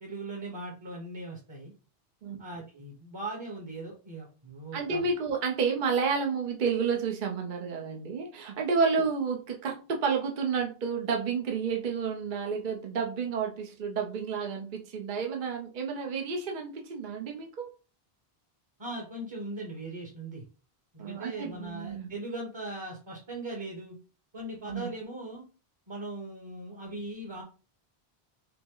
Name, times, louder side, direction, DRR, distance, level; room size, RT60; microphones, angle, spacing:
voice 1, 0.0-1.7 2.4-5.4 18.8-20.4 20.9-23.9 24.3-25.4 25.9-27.4, right 2 dB, 30° right, -1 dB, 1.0 m, -39 dB
voice 2, 4.7-17.7 21.0-22.1 24.7-24.9, right 5 dB, 55° right, 1 dB, 0.8 m, -30 dB
5.8 x 2.1 x 3.7 m, 0.35 s
omnidirectional pair, 1.0 m